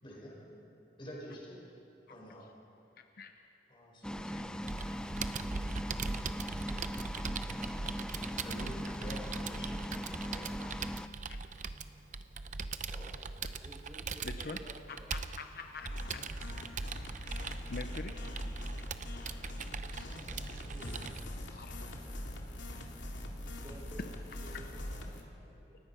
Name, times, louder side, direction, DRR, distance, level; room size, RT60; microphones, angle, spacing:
voice 1, 0.0-0.6 1.0-1.6 2.1-2.5 3.7-4.6 6.6-7.0 7.5-7.7 8.4-9.8 10.3-10.5 12.9-13.1 20.0-21.1, equal, 25° left, -3 dB, 5.2 m, -48 dB
voice 2, 3.0-3.5 4.3-4.5 4.8-5.1 10.6-10.9 11.3-11.5 14.2-14.6 14.9-16.3 17.7-18.3 21.5-21.9 24.5-24.6, left 4 dB, 55° left, 6 dB, 0.8 m, -46 dB
sound 1, 4.0-11.1, equal, 5° left, 0.4 m, -40 dB
Computer keyboard, 4.7-21.2, right 4 dB, 40° right, 0.6 m, -41 dB
voice 3, 13.6-15.1 23.6-25.8, right 1 dB, 15° right, -1 dB, 4.4 m, -53 dB
sound 2, 15.8-25.2, left 1 dB, 80° left, 2.5 m, -42 dB
29.0 x 16.0 x 5.7 m, 2.9 s
head